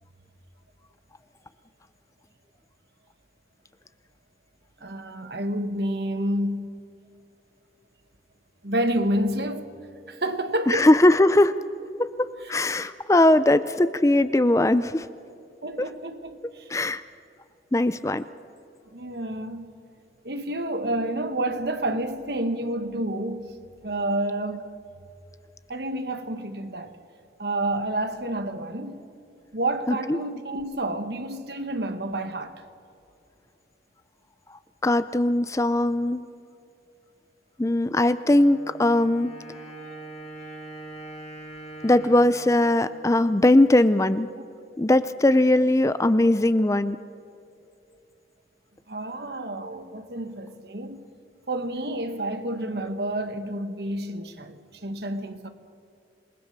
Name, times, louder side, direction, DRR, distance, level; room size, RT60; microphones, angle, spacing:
voice 1, 4.8-6.7 8.6-9.7 10.1-10.9 15.6-16.7 18.9-19.7 20.2-23.6 23.8-24.7 25.7-26.9 27.4-29.1 29.5-32.5 48.9-51.0 51.5-55.5, right 1 dB, 65° right, 1.5 m, -29 dB
voice 2, 10.7-11.6 12.0-15.1 16.7-17.0 17.7-18.2 29.9-30.2 34.8-36.2 37.6-39.3 41.8-44.3 44.8-47.0, left 1 dB, 15° left, 0.4 m, -20 dB
Wind instrument woodwind instrument, 38.2-43.9, right 1 dB, 35° left, 3.5 m, -43 dB
27.5 x 19.5 x 6.7 m
head